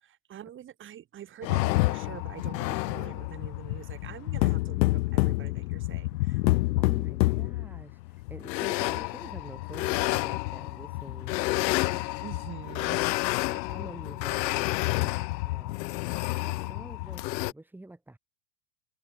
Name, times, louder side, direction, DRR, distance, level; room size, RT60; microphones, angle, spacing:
voice 1, 0.0-6.4 12.2-13.0, right 11 dB, 25° right, 1.3 m, -45 dB
sound 1, 1.4-17.5, left 20 dB, 85° left, 0.5 m, -29 dB
voice 2, 6.8-12.1 13.2-15.1 15.4-16.0 16.5-18.2, right 2 dB, 5° right, 1.5 m, -48 dB
supercardioid pair, 130°, 50 cm